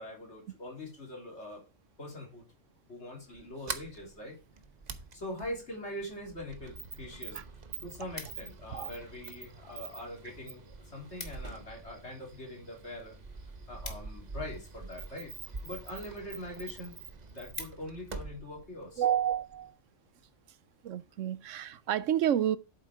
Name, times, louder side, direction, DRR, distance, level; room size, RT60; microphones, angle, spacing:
voice 1, 0.0-1.6 2.0-2.4 2.9-4.4 5.1-7.4 7.8-13.2 13.7-15.3 15.6-17.0 17.3-19.0, left 1 dB, 60° left, 3.6 m, -43 dB
Sliding door, 3.3-19.7, right 4 dB, 35° right, 1.0 m, -45 dB
sound 1, 7.7-8.8 9.5-10.0 10.3-10.4 10.7-10.8 11.0-11.6 12.0-14.8 15.5-15.9 16.4-16.5 16.8-16.9 17.2-18.2 18.7-18.9, left 3 dB, 35° left, 1.7 m, -47 dB
voice 2, 19.0-19.7 20.8-22.6, right 10 dB, 80° right, 1.0 m, -29 dB
8.2 x 7.6 x 4.8 m
omnidirectional pair, 1.3 m